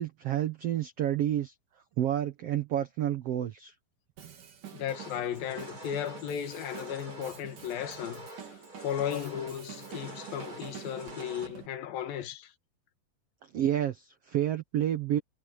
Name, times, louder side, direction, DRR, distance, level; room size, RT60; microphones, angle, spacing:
voice 1, 0.0-1.5 2.0-3.7 13.5-15.2, right 11 dB, 85° right, 1.3 m, -29 dB
Drum kit, 4.2-11.7, right 9 dB, 60° right, 4.1 m, -48 dB
voice 2, 4.7-8.3 8.8-12.5, left 9 dB, 75° left, 3.2 m, -35 dB
sound 1, 4.9-11.5, right 1 dB, 20° right, 7.8 m, -47 dB
omnidirectional pair, 4.2 m